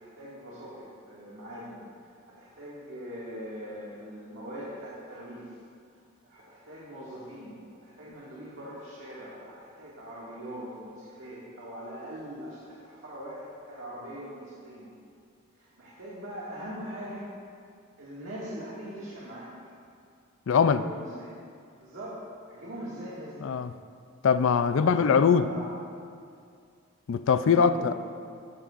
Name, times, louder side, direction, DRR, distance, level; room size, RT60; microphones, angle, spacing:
voice 1, 0.0-5.6 6.2-14.9 15.6-17.3 18.0-19.5 20.6-21.4 21.8-23.5 24.8-25.7 27.3-27.9, equal, 65° right, -8 dB, 2.0 m, -41 dB
voice 2, 20.5-20.8 23.4-23.7 24.2-25.5 27.1-27.9, left 6 dB, 65° left, 12 dB, 0.4 m, -22 dB
13.5 x 13.0 x 2.5 m, 2.3 s
head